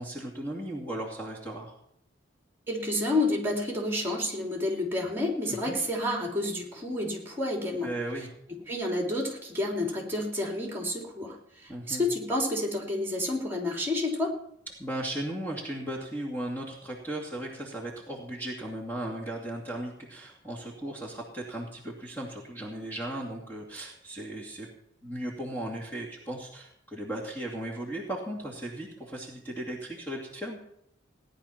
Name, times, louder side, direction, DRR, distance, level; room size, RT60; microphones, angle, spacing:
voice 1, 0.0-1.7 5.6-5.8 7.8-8.3 11.7-12.0 14.8-24.7 25.0-30.6, right 1 dB, 10° left, -3 dB, 2.4 m, -36 dB
voice 2, 2.7-7.9 8.7-14.3, left 1 dB, 10° right, 0 dB, 3.3 m, -30 dB
18.0 x 10.5 x 5.9 m, 0.73 s
head